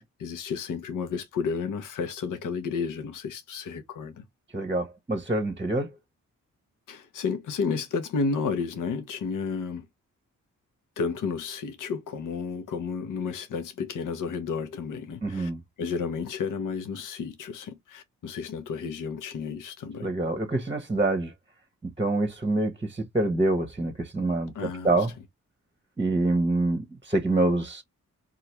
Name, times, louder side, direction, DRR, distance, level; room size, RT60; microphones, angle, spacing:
voice 1, 0.0-4.2 6.9-9.9 11.0-15.5 15.8-20.1 24.5-24.9, left 5 dB, 65° left, 0.7 m, -32 dB
voice 2, 4.5-5.9 15.2-15.6 20.0-21.3 21.8-25.1 26.0-27.8, right 2 dB, 15° right, 0.8 m, -26 dB
3.1 x 2.4 x 2.9 m
supercardioid pair, 45°, 34 cm